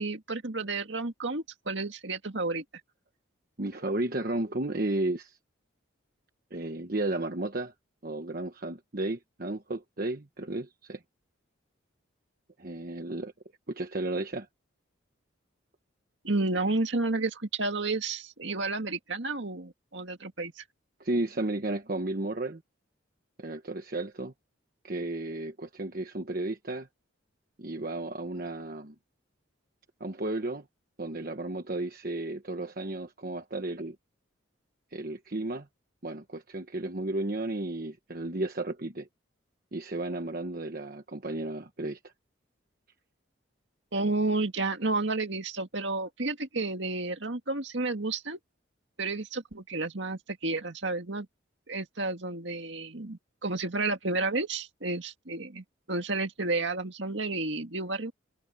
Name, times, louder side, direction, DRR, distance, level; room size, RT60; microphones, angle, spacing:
voice 1, 0.0-2.6 16.2-20.6 43.9-48.4 49.0-51.3 51.7-58.1, right 3 dB, 65° right, 2.1 m, -31 dB
voice 2, 3.6-5.4 6.5-7.7 8.0-11.0 12.6-13.3 13.7-14.5 21.0-22.6 23.4-24.3 24.8-26.9 27.6-28.9 30.0-30.6 31.0-33.9 34.9-35.7 36.0-39.1 39.7-42.0, right 2 dB, 45° right, 1.2 m, -33 dB
head